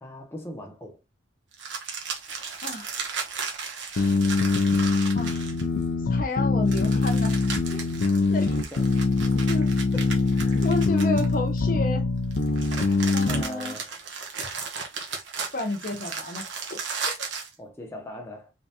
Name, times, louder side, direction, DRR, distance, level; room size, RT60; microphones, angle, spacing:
voice 1, 0.0-1.0 8.0-8.8 9.9-10.7 12.7-13.9 17.6-18.5, left 1 dB, 15° left, 0.8 m, -41 dB
sound 1, 1.5-5.8 6.7-11.6 12.3-17.5, right 5 dB, 75° right, 1.1 m, -35 dB
voice 2, 2.6-2.9 3.9-4.2 4.8-5.4 6.1-7.4 7.7-8.0 8.3-8.5 9.5-9.7 10.6-12.0 13.1-13.8 15.5-16.8, left 2 dB, 45° left, 0.8 m, -32 dB
sound 2, 4.0-13.4, left 3 dB, 70° left, 0.5 m, -23 dB
3.7 x 3.4 x 2.8 m
head